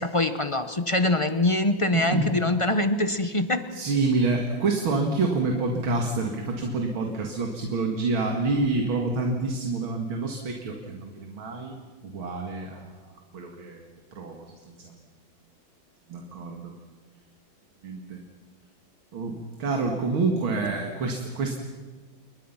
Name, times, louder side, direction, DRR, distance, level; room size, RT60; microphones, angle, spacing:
voice 1, 0.0-3.7, left 2 dB, 40° left, 10 dB, 0.4 m, -24 dB
voice 2, 1.9-2.3 3.7-11.8 12.0-12.9 13.3-13.8 14.1-14.9 16.1-16.7 17.8-18.2 19.1-21.6, right 3 dB, 85° right, 2 dB, 2.8 m, -27 dB
29.0 x 24.0 x 5.8 m, 1.4 s
omnidirectional pair, 2.2 m